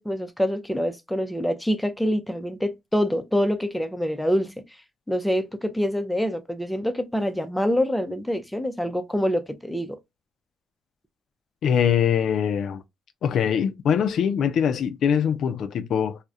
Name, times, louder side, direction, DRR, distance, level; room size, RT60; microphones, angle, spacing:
voice 1, 0.0-4.5 5.1-10.0, equal, 5° left, 0.4 m, -25 dB
voice 2, 11.6-12.8 13.2-16.2, left 8 dB, 70° left, 0.3 m, -23 dB
2.3 x 2.0 x 2.6 m
cardioid pair, 90°, 0 cm